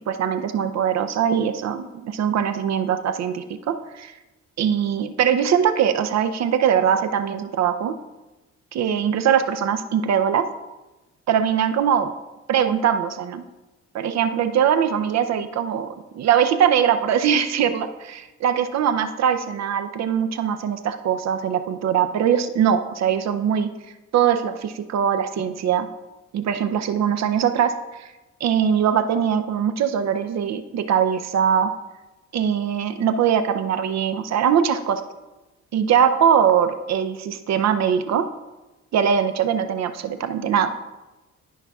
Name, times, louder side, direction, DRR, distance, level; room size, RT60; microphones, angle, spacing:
voice 1, 0.1-4.1 4.6-7.9 8.7-10.5 11.3-12.1 12.5-13.4 13.9-15.9 16.1-23.7 24.1-25.9 26.3-27.7 28.0-28.1 28.4-31.7 32.3-35.0 35.7-38.3 38.9-40.7, right 8 dB, 60° right, 9 dB, 0.6 m, -21 dB
12.5 x 5.6 x 2.3 m, 1.1 s
cardioid pair, 90°, 30 cm